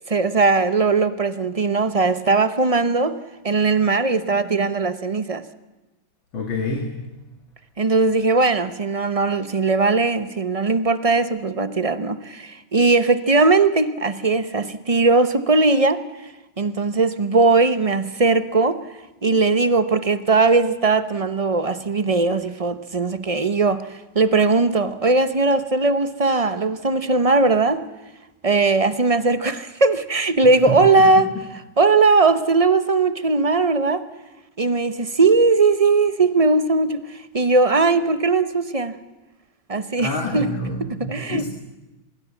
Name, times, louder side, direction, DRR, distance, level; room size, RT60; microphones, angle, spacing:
voice 1, 0.1-3.2 3.4-5.4 7.8-16.3 16.6-18.8 19.2-27.8 28.4-31.3 31.8-34.0 34.6-38.9 39.7-40.5 41.1-41.5, right 3 dB, 30° right, 12 dB, 0.6 m, -19 dB
voice 2, 6.3-6.9 30.7-30.8 40.0-41.5, left 2 dB, 80° left, 3 dB, 3.2 m, -27 dB
25.0 x 21.5 x 7.3 m, 1.1 s
omnidirectional pair, 2.1 m